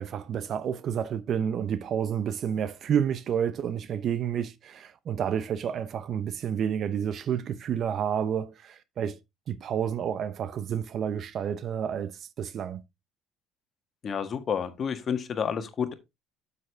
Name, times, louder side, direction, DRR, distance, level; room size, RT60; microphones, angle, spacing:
voice 1, 0.0-9.2 9.5-12.8, right 8 dB, 55° right, 0.9 m, -30 dB
voice 2, 14.0-15.9, left 7 dB, 45° left, 1.6 m, -30 dB
7.6 x 7.0 x 3.4 m
hypercardioid pair, 70°, 0 cm